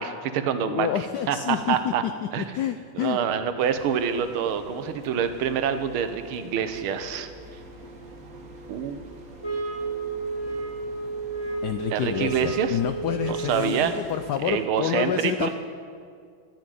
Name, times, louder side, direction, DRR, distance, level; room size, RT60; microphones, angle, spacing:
voice 1, 0.0-0.9 1.3-2.0 2.3-2.5 2.9-7.3 8.7-9.0 11.9-12.8 13.3-13.9 14.4-15.5, right 8 dB, 80° right, 10 dB, 1.7 m, -26 dB
voice 2, 0.6-2.1 2.4-3.2 11.6-15.5, left 10 dB, 85° left, 10 dB, 0.9 m, -28 dB
sound 1, 3.6-14.7, right 1 dB, 45° right, 1.7 m, -46 dB
sound 2, 9.4-13.8, right 4 dB, 15° left, 1.6 m, -32 dB
12.0 x 7.2 x 9.2 m, 2.2 s
omnidirectional pair, 2.3 m